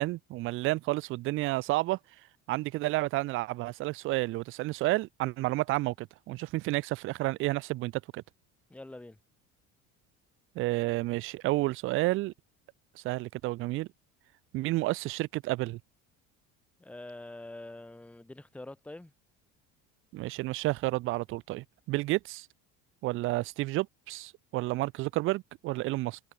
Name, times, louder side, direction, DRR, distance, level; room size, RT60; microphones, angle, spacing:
voice 1, 0.0-2.0 2.5-8.2 10.6-12.3 13.0-13.9 14.5-15.8 20.1-22.5 23.0-26.2, right 19 dB, 45° right, 0.4 m, -31 dB
voice 2, 8.7-9.2 16.8-19.1, left 2 dB, 5° left, 1.4 m, -45 dB
cardioid pair, 160°, 29 cm